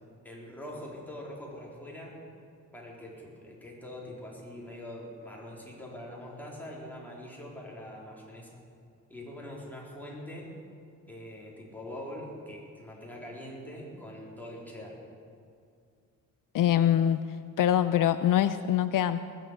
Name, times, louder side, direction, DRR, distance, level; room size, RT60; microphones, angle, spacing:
voice 1, 0.2-2.1 2.7-8.6 9.1-10.5 11.1-15.0, left 1 dB, 5° left, -3 dB, 3.8 m, -43 dB
voice 2, 16.5-17.2 17.6-19.2, left 10 dB, 70° left, 12 dB, 0.6 m, -24 dB
20.0 x 7.8 x 8.2 m, 2.4 s
cardioid pair, 110°, 33 cm